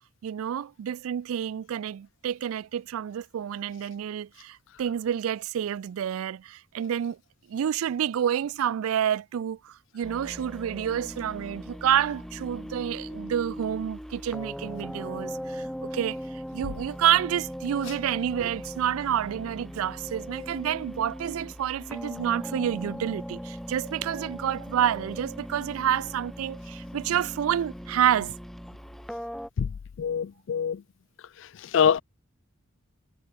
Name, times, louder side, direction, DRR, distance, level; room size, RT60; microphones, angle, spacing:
voice 1, 0.2-7.2 7.5-28.3, right 9 dB, 85° right, 0.3 m, -29 dB
sound 1, 10.0-29.5, equal, ahead, 2.0 m, -39 dB
voice 2, 30.0-30.8 31.7-32.0, left 7 dB, 60° left, 0.3 m, -24 dB
head